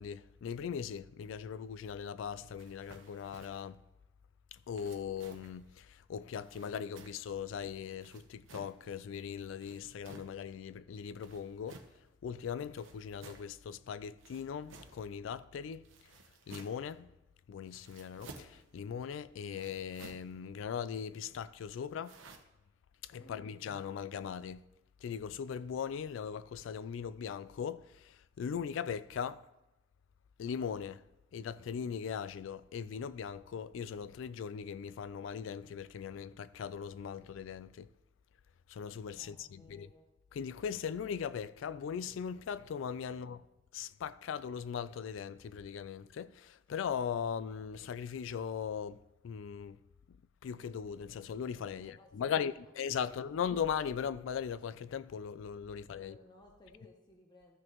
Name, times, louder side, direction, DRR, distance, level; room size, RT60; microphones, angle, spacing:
voice 1, 0.0-3.8 4.5-11.8 12.2-15.9 16.5-17.1 17.5-22.2 23.0-24.6 25.0-29.5 30.4-31.0 31.3-37.9 38.7-39.9 40.3-43.5 43.7-49.8 50.1-50.2 50.4-56.2, left 7 dB, 75° left, 0.3 m, -39 dB
sound 1, 2.6-3.7 4.7-5.6 6.4-7.4 8.0-8.8 9.5-10.4 11.2-12.0 12.7-13.5 14.2-15.1 15.8-16.9 17.7-18.6 19.5-20.3 22.0-22.4, right 3 dB, 90° right, 1.0 m, -55 dB
voice 2, 23.2-23.6 39.2-40.1 51.7-52.7 53.0-53.2 55.7-57.6, left 1 dB, 20° left, 0.8 m, -59 dB
13.5 x 6.2 x 3.0 m
head